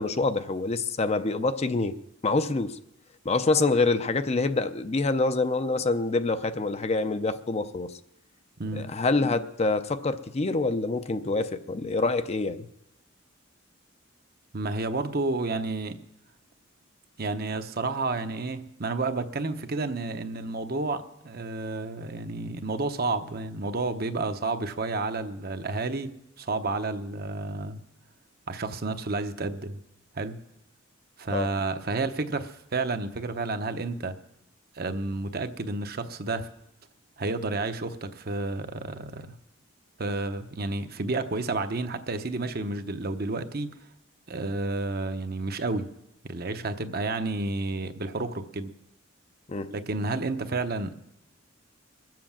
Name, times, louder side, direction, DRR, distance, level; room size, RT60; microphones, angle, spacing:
voice 1, 0.0-2.0 2.2-2.8 3.2-7.9 8.7-12.7 31.3-31.5 49.5-49.7, left 3 dB, 30° left, 0.5 m, -26 dB
voice 2, 14.5-16.0 17.2-27.8 28.5-29.8 30.1-30.4 31.2-34.1 34.7-36.5 37.2-39.3 40.0-43.7 44.3-45.9 46.3-48.7 49.7-51.0, right 3 dB, 50° right, 0.9 m, -31 dB
22.0 x 7.7 x 7.3 m
head